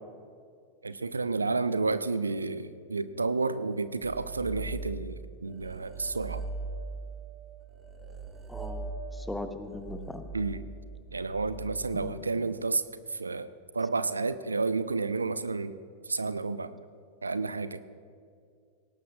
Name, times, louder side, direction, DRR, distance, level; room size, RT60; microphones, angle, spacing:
voice 1, 0.8-6.4 10.3-10.6 11.1-12.8 13.1-15.7 16.1-16.7 17.2-17.8, right 3 dB, 80° right, 14 dB, 0.4 m, -31 dB
sound 1, 4.0-5.2 5.5-12.0, right 3 dB, 20° right, 1.2 m, -40 dB
voice 2, 8.5-10.2 11.9-12.2, left 2 dB, 5° left, 8 dB, 1.0 m, -39 dB
19.5 x 18.0 x 2.4 m, 2.3 s
figure-of-eight pair, 90°, 0 cm